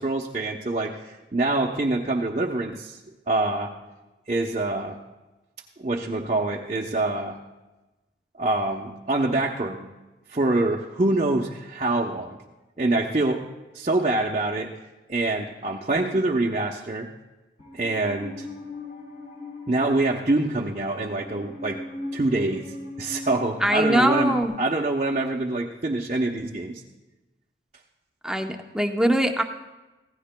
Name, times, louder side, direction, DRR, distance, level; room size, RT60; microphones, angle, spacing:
voice 1, 0.0-3.0 3.3-3.7 4.3-5.0 5.8-7.4 8.4-9.9 10.3-12.4 12.8-13.5 13.7-14.7 15.1-17.1 17.7-18.5 19.7-21.8 22.1-26.8, right 2 dB, 40° right, -2 dB, 0.8 m, -25 dB
Musical instrument, 17.6-24.4, left 2 dB, 50° left, 3.1 m, -39 dB
voice 2, 23.6-24.5 28.2-29.4, right 1 dB, 5° right, 4 dB, 0.7 m, -22 dB
25.5 x 16.5 x 2.2 m, 1.1 s
head